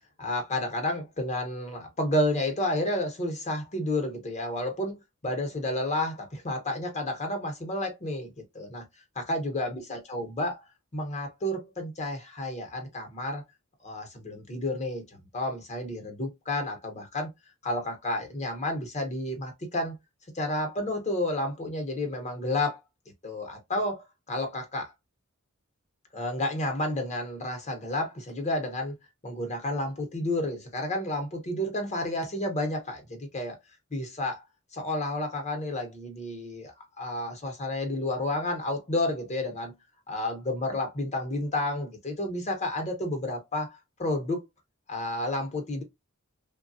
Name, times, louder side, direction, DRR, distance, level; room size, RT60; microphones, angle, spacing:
voice 1, 0.2-8.8 9.1-10.6 10.9-13.4 13.8-17.3 17.6-20.0 20.3-22.8 23.2-24.9 26.1-29.0 29.2-33.6 33.9-34.4 34.7-39.7 40.1-44.4 44.9-45.8, left 1 dB, 35° left, 0.9 m, -31 dB
3.1 x 2.2 x 2.6 m
head